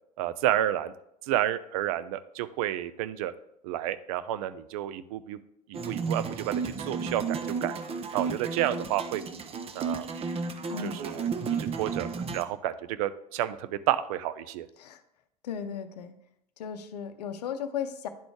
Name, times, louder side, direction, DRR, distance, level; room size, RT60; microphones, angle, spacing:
voice 1, 0.2-0.9 1.2-3.3 3.6-5.4 5.7-7.8 8.1-9.5 9.7-10.1 10.8-11.3 11.6-12.1 12.3-14.7, right 12 dB, 60° right, 14 dB, 0.4 m, -30 dB
sound 1, 5.7-12.4, right 5 dB, 30° right, 0.7 m, -33 dB
voice 2, 10.7-11.0 14.8-15.0 15.4-16.1 16.6-18.1, left 7 dB, 75° left, 10 dB, 0.6 m, -35 dB
10.5 x 4.0 x 3.3 m, 0.77 s
figure-of-eight pair, 75°, 21 cm